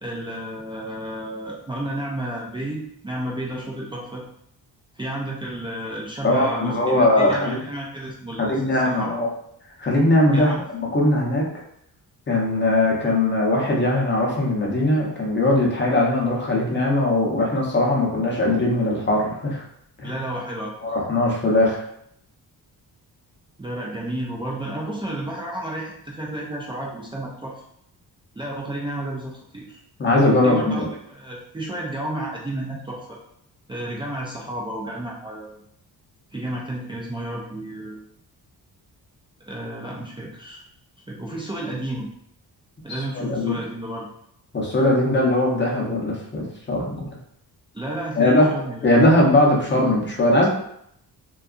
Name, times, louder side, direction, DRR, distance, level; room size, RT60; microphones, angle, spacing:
voice 1, 0.0-4.2 5.0-9.1 10.3-10.6 20.0-20.7 23.6-27.6 28.3-29.8 30.4-33.1 33.7-35.6 36.3-38.0 39.5-40.6 41.1-42.1 42.8-44.1 47.7-48.8, right 1 dB, 15° right, -4 dB, 0.3 m, -31 dB
voice 2, 6.2-7.6 8.4-9.3 9.8-10.5 10.9-11.5 12.3-19.6 20.0-20.2 20.8-21.8 30.0-30.9 42.9-43.5 44.5-47.2 48.2-48.5 48.8-50.5, left 1 dB, 30° left, -3 dB, 0.7 m, -20 dB
2.6 x 2.3 x 2.4 m, 0.73 s
wide cardioid pair, 125°, 38 cm